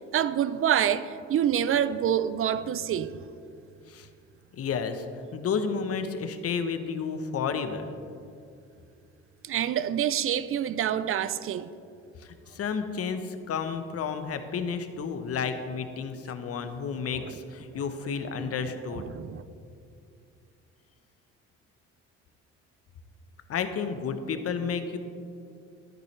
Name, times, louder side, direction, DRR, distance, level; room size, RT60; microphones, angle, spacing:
voice 1, 0.1-3.2 9.4-11.7 17.1-17.3 18.9-19.4, right 10 dB, 45° right, 0.4 m, -27 dB
voice 2, 4.5-5.1 5.3-7.9 12.2-19.0 23.5-25.0, left 6 dB, 50° left, 0.9 m, -31 dB
10.5 x 9.0 x 3.2 m
supercardioid pair, 65°, 31 cm